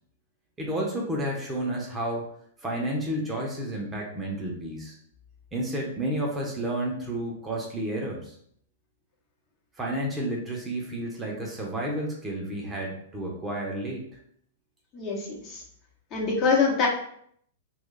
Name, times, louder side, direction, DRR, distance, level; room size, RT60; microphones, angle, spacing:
voice 1, 0.6-2.2 2.6-5.0 5.5-8.4 9.8-14.1, right 1 dB, 15° right, -1 dB, 0.7 m, -31 dB
voice 2, 14.9-15.6 16.1-16.9, left 5 dB, 35° left, -2 dB, 0.9 m, -24 dB
2.3 x 2.3 x 3.8 m, 0.65 s
figure-of-eight pair, 105°, 0 cm